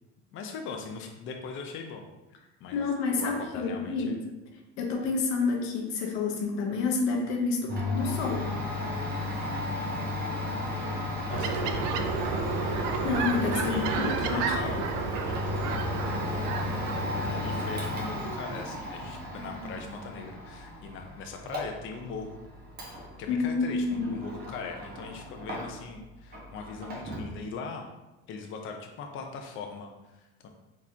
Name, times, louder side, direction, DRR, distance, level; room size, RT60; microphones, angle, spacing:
voice 1, 0.3-2.1 2.6-2.8 3.1-4.3 10.8-12.2 13.7-14.9 17.2-22.4 23.2-27.9 28.3-30.5, left 4 dB, 40° left, 3 dB, 0.5 m, -40 dB
voice 2, 2.7-4.2 4.8-8.4 13.0-14.8 23.3-24.3, left 4 dB, 90° left, 1 dB, 0.9 m, -29 dB
Domestic sounds home sounds, 7.7-26.0 26.3-27.4, left 2 dB, 30° right, 1.1 m, -34 dB
sound 1, 11.3-17.9, right 6 dB, 85° right, 0.5 m, -32 dB
4.1 x 3.0 x 2.7 m, 1.0 s
supercardioid pair, 115°, 31 cm